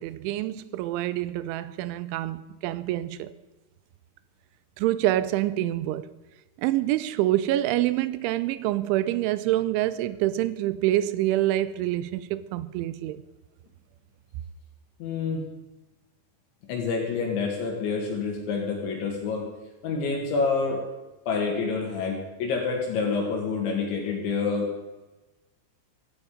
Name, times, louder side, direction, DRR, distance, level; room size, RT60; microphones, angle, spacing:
voice 1, 0.0-3.3 4.8-6.1 6.6-13.2, right 14 dB, 80° right, 2.9 m, -26 dB
voice 2, 15.0-15.4 16.7-19.5 19.8-20.9 21.3-24.7, left 4 dB, 70° left, 4.0 m, -27 dB
15.5 x 14.0 x 5.1 m
omnidirectional pair, 5.9 m